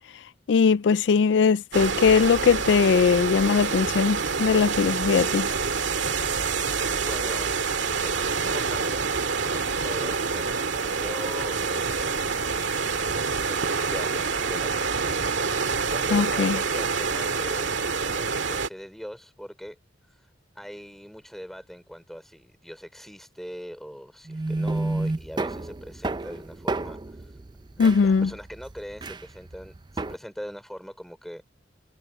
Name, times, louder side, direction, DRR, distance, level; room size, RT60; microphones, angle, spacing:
voice 1, 0.5-5.5 16.1-16.6 27.8-28.3, left 5 dB, 75° left, 0.4 m, -20 dB
sound 1, 1.7-18.7, right 5 dB, 85° right, 1.9 m, -27 dB
voice 2, 6.6-7.5 8.0-12.2 12.9-15.2 15.4-19.8 20.6-27.0 27.8-31.5, equal, ahead, 3.7 m, -41 dB
sound 2, 24.3-30.2, right 2 dB, 25° right, 0.4 m, -31 dB
head